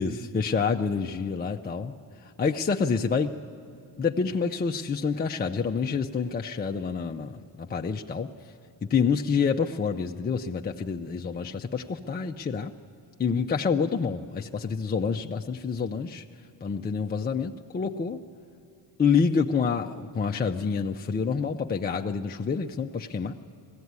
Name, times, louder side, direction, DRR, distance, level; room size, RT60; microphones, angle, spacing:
voice 1, 0.0-1.9 2.2-3.3 4.0-8.3 8.8-12.7 13.2-16.2 16.6-18.2 19.0-23.4, left 5 dB, 20° left, 2 dB, 0.6 m, -27 dB
19.5 x 15.5 x 9.5 m, 2.5 s
cardioid pair, 95°, 42 cm